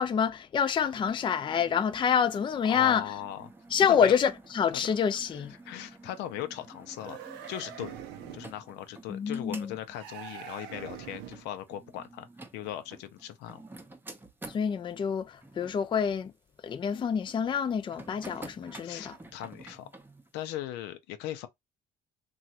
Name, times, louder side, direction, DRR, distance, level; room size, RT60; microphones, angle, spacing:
voice 1, 0.0-3.0 3.7-5.5 9.1-9.7 14.5-16.3 16.6-19.1, left 7 dB, 30° left, 0.4 m, -27 dB
sound 1, 0.9-14.7 15.4-15.8 17.9-20.3, right 2 dB, 10° right, 0.6 m, -50 dB
voice 2, 2.7-3.5 3.9-4.2 4.7-5.0 5.3-7.2 7.5-8.0 8.3-12.3 12.5-13.6 18.8-19.9 20.3-21.5, left 12 dB, 85° left, 0.5 m, -38 dB
sound 2, 6.9-8.6 9.9-11.5, right 9 dB, 85° right, 0.5 m, -43 dB
3.0 x 2.3 x 2.7 m
cardioid pair, 110°, 17 cm